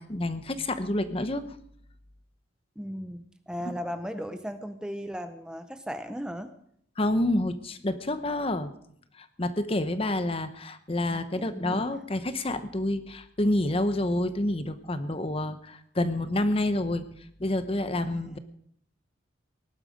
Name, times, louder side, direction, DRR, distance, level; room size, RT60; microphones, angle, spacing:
voice 1, 0.0-1.6 3.6-3.7 7.0-8.7 9.2-17.1 17.4-18.4, left 1 dB, 30° left, 11 dB, 0.9 m, -28 dB
voice 2, 2.8-6.5 11.0-12.0 18.1-18.4, equal, 5° right, 9 dB, 0.6 m, -37 dB
18.5 x 12.0 x 5.1 m, 0.67 s
head